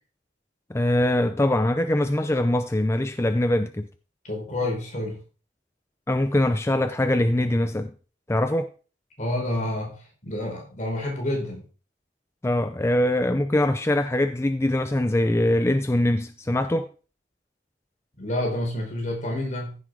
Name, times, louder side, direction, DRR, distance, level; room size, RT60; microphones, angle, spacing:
voice 1, 0.7-3.9 6.1-7.9 8.3-8.7 12.4-16.9, left 1 dB, 15° left, 0.5 m, -23 dB
voice 2, 4.2-5.2 9.2-11.6 18.2-19.8, left 1 dB, 40° left, 4.3 m, -29 dB
15.0 x 6.2 x 4.8 m
head